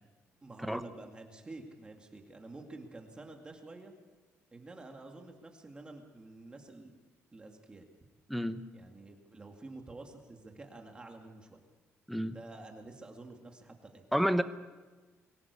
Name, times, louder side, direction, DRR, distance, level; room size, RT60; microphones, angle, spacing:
voice 1, 0.4-3.9 4.5-6.9 7.3-7.9 8.7-11.7 12.3-14.1, right 2 dB, 20° right, 3 dB, 2.2 m, -49 dB
voice 2, 8.3-8.6 12.1-12.4 14.1-14.4, equal, ahead, 11 dB, 1.0 m, -29 dB
23.5 x 17.0 x 8.3 m, 1.3 s
cardioid pair, 145°, 5 cm